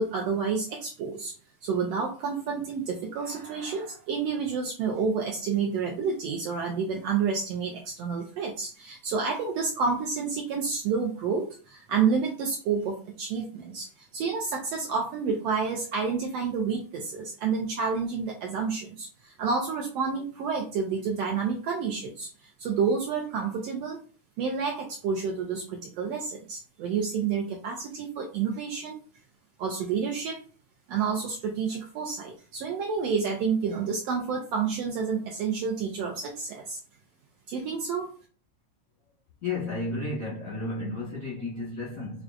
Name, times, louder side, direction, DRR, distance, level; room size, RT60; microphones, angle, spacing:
voice 1, 0.0-1.3 1.6-13.9 14.1-22.3 22.6-24.0 24.4-29.0 29.6-30.4 30.9-36.8 37.5-38.1, right 5 dB, 80° right, 1.5 m, -29 dB
voice 2, 39.4-42.2, left 2 dB, 60° left, 0.8 m, -33 dB
6.2 x 2.3 x 2.4 m
omnidirectional pair, 3.4 m